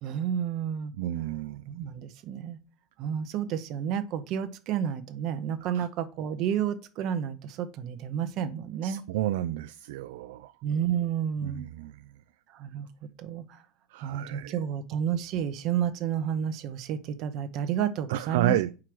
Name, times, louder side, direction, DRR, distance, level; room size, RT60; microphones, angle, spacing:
voice 1, 0.0-0.9 1.7-2.6 3.0-9.0 10.6-11.6 12.5-12.9 13.2-13.6 14.0-18.6, right 9 dB, 45° right, 0.6 m, -31 dB
voice 2, 1.0-1.6 5.7-5.9 8.8-10.5 11.4-12.0 13.9-14.6 18.1-18.7, right 13 dB, 80° right, 0.3 m, -31 dB
4.8 x 4.6 x 5.9 m
supercardioid pair, 165°, 0 cm